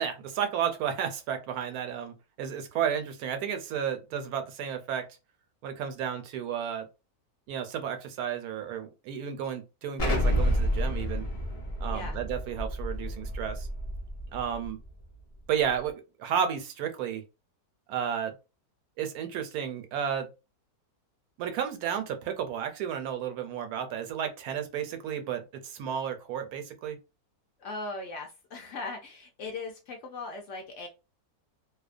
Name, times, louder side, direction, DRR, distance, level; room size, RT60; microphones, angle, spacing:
voice 1, 0.0-5.0 5.6-6.9 7.5-11.3 11.8-13.7 14.3-14.8 15.5-17.2 17.9-18.3 19.0-20.3 21.4-27.0, right 8 dB, 80° right, 1.1 m, -32 dB
Explosion, 10.0-14.7, equal, 40° left, 0.5 m, -29 dB
voice 2, 27.6-30.9, left 3 dB, 65° left, 0.8 m, -39 dB
2.7 x 2.1 x 2.4 m
omnidirectional pair, 1.6 m